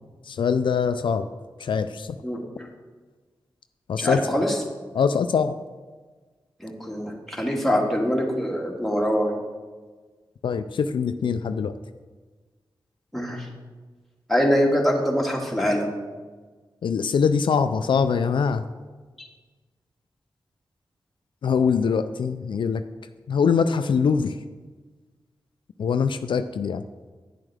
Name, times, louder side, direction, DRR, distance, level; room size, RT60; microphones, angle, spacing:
voice 1, 0.3-1.3 1.6-2.2 3.9-4.4 4.9-5.6 10.4-11.7 16.8-18.6 21.4-22.8 23.3-24.4 25.8-26.8, left 6 dB, 75° left, 10 dB, 0.3 m, -23 dB
voice 2, 2.2-2.7 4.0-4.6 6.6-9.3 13.1-13.5 14.3-15.9 19.2-19.3, equal, 5° left, -1 dB, 1.8 m, -24 dB
9.3 x 7.2 x 3.4 m, 1.4 s
cardioid pair, 55°, 8 cm